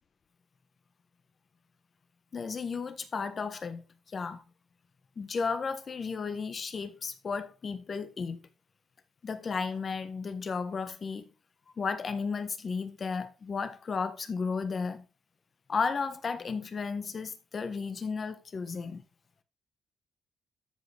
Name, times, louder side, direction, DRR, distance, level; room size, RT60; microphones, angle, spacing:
voice 1, 2.3-3.8 4.1-4.4 5.2-8.4 9.2-11.3 11.8-15.0 15.7-19.0, left 5 dB, 40° left, 1.3 m, -34 dB
13.0 x 5.1 x 3.5 m
cardioid pair, 90°, 0 cm